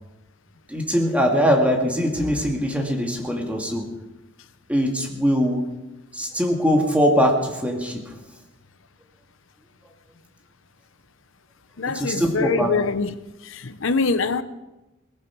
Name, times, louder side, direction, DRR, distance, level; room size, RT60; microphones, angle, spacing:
voice 1, 0.7-3.8 4.7-5.6 6.1-8.0 11.9-12.7, equal, 5° right, 2.2 m, -21 dB
voice 2, 11.8-13.1 13.4-14.4, left 4 dB, 65° left, 0.9 m, -24 dB
19.0 x 14.5 x 4.8 m
head